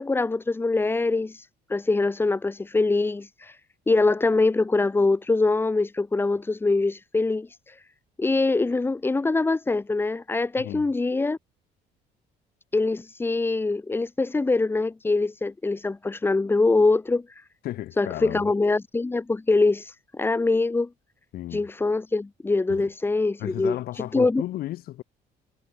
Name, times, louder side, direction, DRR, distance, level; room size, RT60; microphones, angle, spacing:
voice 1, 0.0-3.6 3.9-7.8 8.2-11.4 12.7-17.4 18.0-20.9 21.5-24.4, left 3 dB, 15° left, 0.7 m, -24 dB
voice 2, 10.6-10.9 17.6-18.5 21.3-21.6 22.7-22.9 23.4-25.0, left 14 dB, 65° left, 0.6 m, -34 dB
cardioid pair, 110°, 17 cm